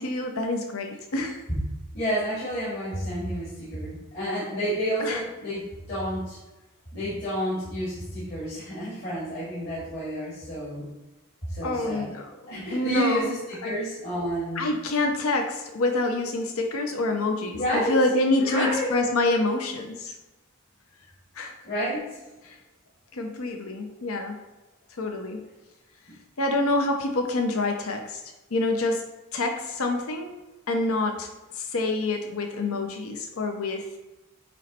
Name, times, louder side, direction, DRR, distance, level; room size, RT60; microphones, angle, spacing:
voice 1, 0.0-1.4 5.0-5.2 11.6-13.3 13.6-13.7 14.6-20.1 21.4-21.5 22.5-22.6 23.1-24.4 25.0-25.5 26.4-28.2 28.5-29.0 29.3-30.3 30.7-31.3 31.6-34.0, left 2 dB, 80° left, 4 dB, 0.7 m, -27 dB
voice 2, 1.9-5.6 5.9-6.4 6.9-10.9 11.4-12.1 12.5-14.7 17.4-18.0 18.4-19.0 21.6-22.2 26.1-26.2, equal, 45° left, -10 dB, 2.4 m, -30 dB
9.1 x 3.1 x 4.3 m, 1.0 s
head